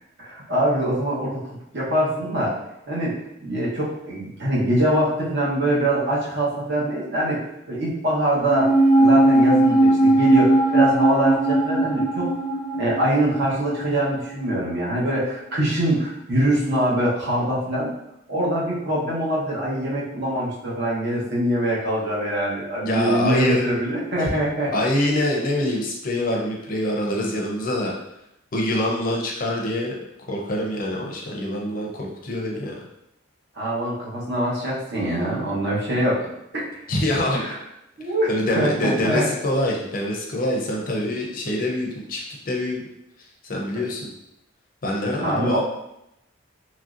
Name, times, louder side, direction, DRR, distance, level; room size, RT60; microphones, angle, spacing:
voice 1, 0.2-1.4 1.7-2.6 2.9-7.4 7.7-8.7 9.0-12.3 12.7-17.9 18.3-24.7 33.6-36.2 36.5-36.9 37.4-37.5 38.0-38.3 38.5-39.3 45.2-45.6, right 1 dB, 55° right, -6 dB, 1.0 m, -23 dB
sound 1, 8.4-15.0 15.3-15.4, right 1 dB, 10° right, 0.5 m, -19 dB
voice 2, 22.8-23.7 24.2-24.3 24.7-27.9 28.5-29.9 30.3-32.8 36.9-37.4 38.3-42.8 43.4-44.1 44.8-45.6, left 1 dB, 45° left, -1 dB, 0.5 m, -25 dB
3.0 x 2.6 x 2.4 m, 0.82 s
head